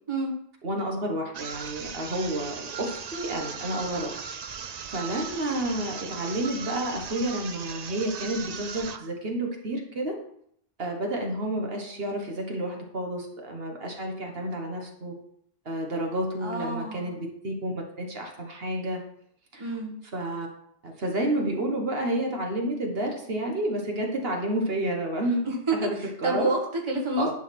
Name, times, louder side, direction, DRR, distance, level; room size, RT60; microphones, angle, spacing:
voice 1, 0.6-4.2 4.9-10.2 10.8-15.2 15.6-19.0 19.5-19.7 20.1-20.5 20.8-25.4 25.8-26.5 27.2-27.3, right 1 dB, 70° right, 1 dB, 1.6 m, -30 dB
sound 1, 1.3-9.1, right 7 dB, 50° right, 0.6 m, -38 dB
voice 2, 16.4-17.2 19.6-20.0 25.4-27.3, right 2 dB, 30° right, 0 dB, 1.4 m, -29 dB
10.5 x 4.0 x 5.9 m, 0.69 s
omnidirectional pair, 1.1 m